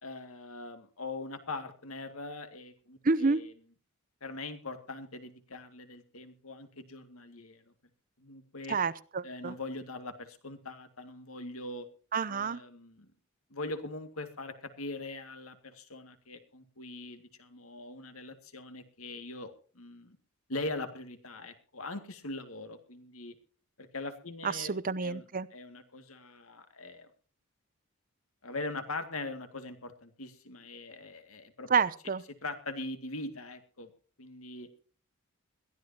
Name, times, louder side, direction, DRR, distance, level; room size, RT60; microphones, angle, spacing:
voice 1, 0.0-3.5 4.2-7.6 8.2-8.8 9.2-11.9 12.3-13.1 13.5-20.2 20.5-23.3 23.8-24.7 25.0-25.2 25.5-27.1 28.4-31.7 32.3-33.9 34.2-34.7, left 2 dB, 80° left, 8 dB, 2.3 m, -41 dB
voice 2, 3.0-3.4 8.7-9.5 12.1-12.6 24.4-25.5 31.7-32.2, right 4 dB, 40° right, 17 dB, 0.7 m, -29 dB
21.5 x 14.5 x 2.9 m, 0.41 s
head